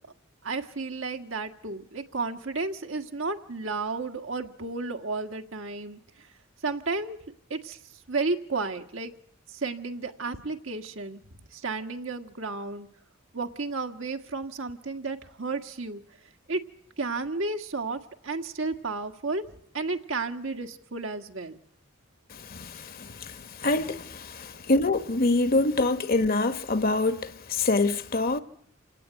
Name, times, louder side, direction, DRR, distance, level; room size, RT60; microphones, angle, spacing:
voice 1, 0.4-6.3 6.6-7.2 7.5-7.8 8.1-9.1 9.5-11.2 11.5-12.9 13.3-16.0 16.5-16.6 17.0-19.4 19.7-21.6, right 3 dB, 75° right, 1.8 m, -32 dB
voice 2, 22.3-28.4, left 2 dB, 45° left, 1.1 m, -26 dB
27.5 x 18.0 x 9.0 m
head